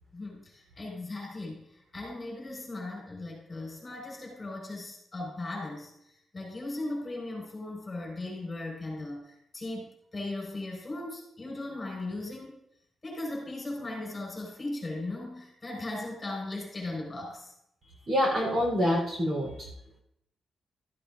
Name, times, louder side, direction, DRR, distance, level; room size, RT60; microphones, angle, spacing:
voice 1, 0.1-12.6 13.0-17.5, left 2 dB, 20° left, -1 dB, 5.1 m, -38 dB
voice 2, 18.1-19.7, equal, 45° right, -1 dB, 3.9 m, -26 dB
15.0 x 13.5 x 2.6 m, 0.77 s
wide cardioid pair, 150°, 0 cm